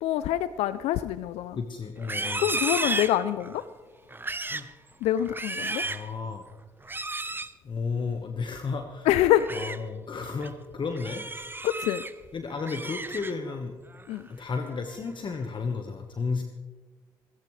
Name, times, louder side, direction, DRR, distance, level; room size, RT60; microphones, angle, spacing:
voice 1, 0.0-1.6 2.4-3.6 5.0-5.8 9.1-9.5 11.6-12.0 14.1-14.3, left 12 dB, 75° left, 0.4 m, -25 dB
voice 2, 1.5-2.5 4.5-4.7 5.8-6.5 7.6-9.1 9.5-11.2 12.3-13.8 14.3-16.4, left 4 dB, 50° left, 1.4 m, -33 dB
Livestock farm animals working animals, 2.0-3.6 4.1-4.7 5.2-6.1 6.8-7.5 9.2-9.8 10.2-10.5 11.0-12.1 12.5-13.5 13.9-14.3 14.7-15.1, right 2 dB, 20° right, 0.9 m, -33 dB
25.0 x 14.0 x 3.3 m
hypercardioid pair, 45°, 11 cm